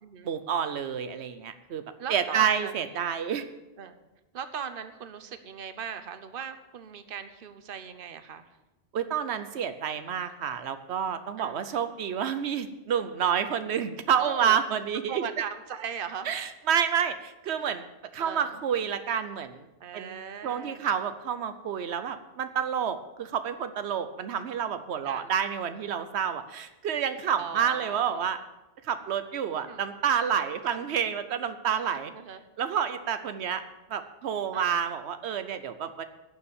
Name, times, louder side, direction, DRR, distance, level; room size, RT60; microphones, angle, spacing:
voice 1, 0.2-1.8 2.1-3.4 8.9-15.2 16.3-17.8 18.1-19.6 19.9-20.2 20.4-28.4 28.9-32.1 32.6-33.6 33.9-36.0, right 8 dB, 85° right, 10 dB, 1.0 m, -29 dB
voice 2, 2.0-2.9 3.8-4.0 4.3-8.5 11.4-11.7 14.2-14.6 15.1-16.3 18.2-18.6 19.8-20.8 25.0-25.3 27.4-28.2 29.6-29.8 30.7-30.9 32.1-32.4 34.5-34.8, right 7 dB, 60° right, 10 dB, 1.0 m, -38 dB
11.5 x 7.0 x 8.8 m, 1.0 s
omnidirectional pair, 1.1 m